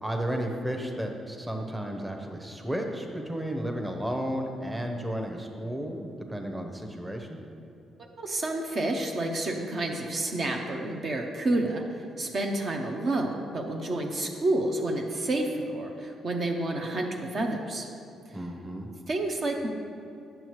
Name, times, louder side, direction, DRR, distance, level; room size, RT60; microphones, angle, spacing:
voice 1, 0.0-7.4 18.3-18.9, equal, 10° right, 2 dB, 0.8 m, -33 dB
voice 2, 8.0-17.9 19.1-19.7, right 2 dB, 50° right, 2 dB, 0.7 m, -29 dB
8.9 x 6.4 x 3.1 m, 2.6 s
cardioid pair, 90°, 0 cm